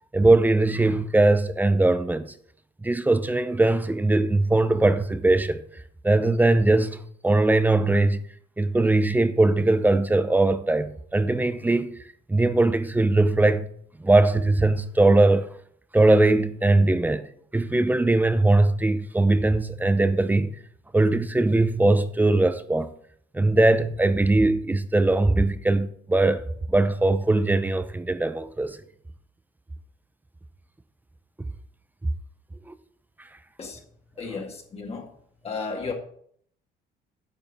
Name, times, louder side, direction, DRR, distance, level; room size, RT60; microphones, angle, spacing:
voice 1, 0.1-2.3 2.8-5.6 6.0-8.2 8.6-11.9 12.3-13.7 14.0-15.5 15.9-17.2 17.5-20.5 20.9-22.9 23.3-26.4 26.7-28.8 32.7-32.8, right 2 dB, 10° right, 0.7 m, -20 dB
voice 2, 34.2-35.1 35.4-35.9, left 4 dB, 35° left, 2.0 m, -33 dB
9.1 x 5.4 x 6.6 m
cardioid pair, 110°, 17 cm